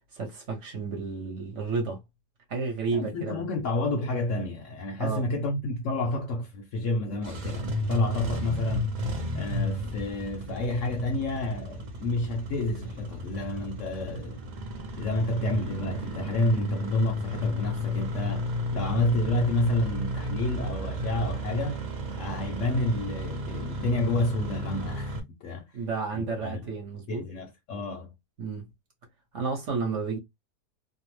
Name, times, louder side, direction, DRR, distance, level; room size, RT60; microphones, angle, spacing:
voice 1, 0.1-2.0 2.5-3.4 5.0-5.3 25.7-27.2 28.4-28.7 29.3-30.2, right 4 dB, 55° right, 1.1 m, -31 dB
voice 2, 2.9-8.9 9.3-14.4 15.0-21.8 22.1-25.6 26.1-26.6 27.1-28.1, left 2 dB, 65° left, 0.8 m, -29 dB
Engine starting, 7.1-25.2, equal, 85° right, 0.4 m, -33 dB
2.7 x 2.0 x 3.0 m
omnidirectional pair, 1.7 m